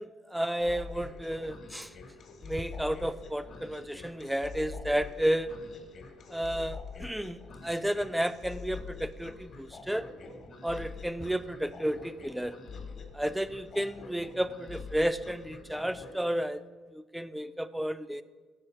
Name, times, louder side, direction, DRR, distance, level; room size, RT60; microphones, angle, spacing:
voice 1, 0.0-1.9 2.4-5.5 6.3-10.1 10.6-12.6 13.1-16.6 16.9-18.2, right 1 dB, 5° right, 13 dB, 0.3 m, -32 dB
sound 1, 0.6-16.2, left 4 dB, 55° left, 1.0 m, -45 dB
6.6 x 4.0 x 5.6 m, 1.4 s
supercardioid pair, 80°, 0 cm